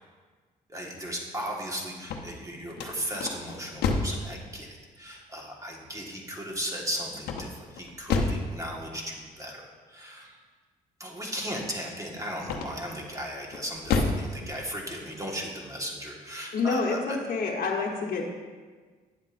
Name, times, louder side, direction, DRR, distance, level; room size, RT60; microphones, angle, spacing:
voice 1, 0.7-9.6 9.9-10.3 11.0-17.2, equal, 20° right, -1 dB, 1.5 m, -36 dB
sound 1, 1.9-4.2 7.2-8.5 12.4-13.0 13.5-14.3, left 4 dB, 85° left, 0.7 m, -29 dB
voice 2, 16.5-18.3, left 4 dB, 60° left, -1 dB, 1.0 m, -28 dB
9.1 x 7.6 x 2.5 m, 1.5 s
cardioid pair, 90°, 16 cm